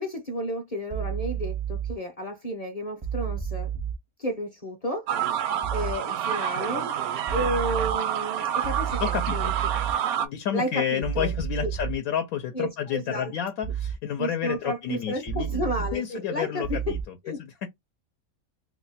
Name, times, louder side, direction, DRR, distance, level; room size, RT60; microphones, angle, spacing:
voice 1, 0.0-3.7 4.2-5.1 5.4-6.9 7.3-9.4 10.5-11.3 11.6-11.7 12.5-13.3 14.2-16.9 17.2-17.4, equal, 40° left, 0.6 m, -32 dB
sound 1, 0.9-1.9 3.0-3.9 5.6-5.9 7.3-7.9 8.6-9.9 11.0-11.9 13.6-13.9 15.3-15.9 16.6-17.0, right 9 dB, 40° right, 0.3 m, -31 dB
sound 2, 5.1-10.3, right 9 dB, 85° right, 1.1 m, -28 dB
voice 2, 9.0-9.5 10.2-15.6 15.9-17.7, left 9 dB, 80° left, 1.0 m, -30 dB
2.8 x 2.2 x 3.9 m
omnidirectional pair, 1.5 m